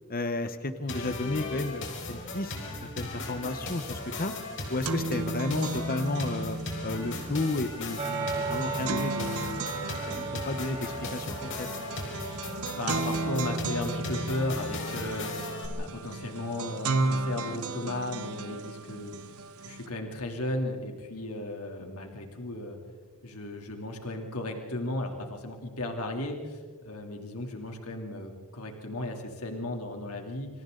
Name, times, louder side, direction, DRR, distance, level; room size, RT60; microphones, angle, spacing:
voice 1, 0.1-4.3 4.7-9.7 10.1-11.7, left 2 dB, 40° left, 9 dB, 1.1 m, -33 dB
sound 1, 0.9-15.7, left 2 dB, 60° left, 4.7 m, -38 dB
sound 2, 3.9-4.0 4.3-19.9, right 3 dB, 75° right, 1.3 m, -35 dB
sound 3, 8.0-13.3, right 3 dB, 30° right, 4.5 m, -36 dB
voice 2, 12.8-19.1 19.6-22.8 23.2-30.5, left 1 dB, 80° left, 2 dB, 3.2 m, -35 dB
28.5 x 26.5 x 3.9 m, 1.4 s
head